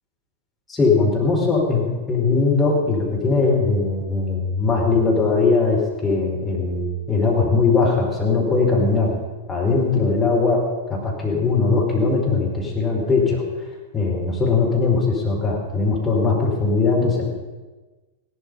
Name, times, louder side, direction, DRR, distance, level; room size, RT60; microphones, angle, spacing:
voice 1, 0.7-9.2 9.5-13.4 13.9-17.3, left 4 dB, 10° left, -3 dB, 4.9 m, -20 dB
17.0 x 12.0 x 5.5 m, 1.2 s
figure-of-eight pair, 95°, 0 cm